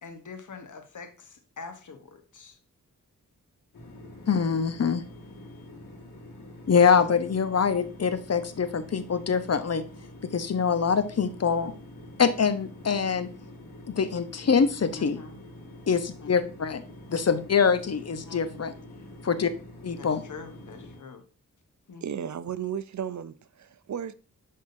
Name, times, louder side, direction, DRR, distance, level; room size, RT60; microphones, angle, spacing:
voice 1, 0.0-2.6 14.9-15.4 16.2-16.3 18.2-18.6 20.0-21.2 21.9-22.0, left 4 dB, 65° left, 1.2 m, -44 dB
sound 1, 3.7-21.0, left 1 dB, 80° left, 2.1 m, -46 dB
voice 2, 4.3-5.0 6.7-9.8 10.2-11.7 12.2-13.3 13.9-15.2 15.9-16.8 17.1-18.7 19.2-19.5 19.8-20.2, left 6 dB, 50° left, 0.8 m, -24 dB
voice 3, 22.0-24.1, right 8 dB, 60° right, 0.6 m, -34 dB
10.5 x 3.7 x 2.7 m
cardioid pair, 65°, 33 cm